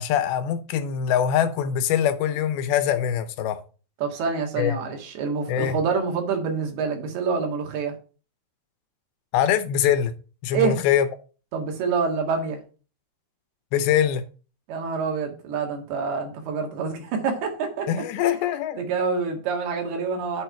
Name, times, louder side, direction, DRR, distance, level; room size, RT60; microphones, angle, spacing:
voice 1, 0.0-3.6 4.6-4.7 5.5-5.8 9.3-10.1 10.4-11.1 13.7-14.2 17.9-18.8, left 9 dB, 80° left, 2.6 m, -23 dB
voice 2, 4.0-7.9 10.5-10.8 11.5-12.6 14.7-17.9 18.3-18.4 18.8-20.4, right 5 dB, 85° right, 3.7 m, -27 dB
8.3 x 4.5 x 5.6 m
omnidirectional pair, 4.4 m